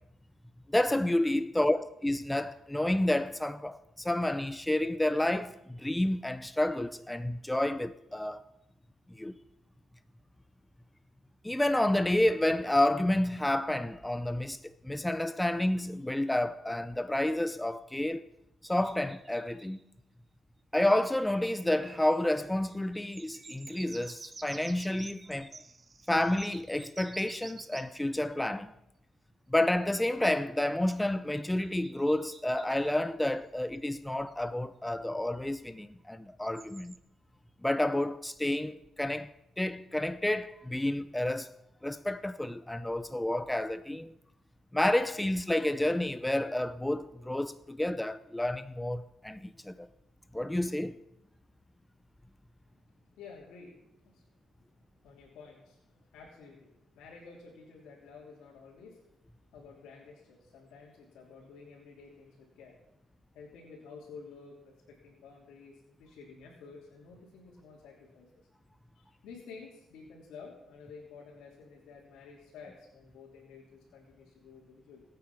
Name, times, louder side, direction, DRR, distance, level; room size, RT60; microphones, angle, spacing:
voice 1, 0.7-8.4 9.2-9.4 11.4-18.3 18.6-19.8 20.7-25.5 26.1-28.7 29.5-37.0 37.6-39.3 39.6-41.5 41.8-44.1 44.7-49.9 50.3-51.0, left 1 dB, 10° left, 0.6 m, -30 dB
sound 1, 18.6-19.8 20.9-28.0 31.3-33.0 33.8-33.9 34.1-34.5 36.4-37.0, right 4 dB, 30° right, 0.9 m, -51 dB
voice 2, 52.8-54.3 54.5-54.7 55.0-59.2 59.5-62.9 63.3-68.3 68.9-75.0, left 5 dB, 85° left, 3.3 m, -51 dB
20.0 x 8.9 x 5.9 m
cardioid pair, 90°, 0 cm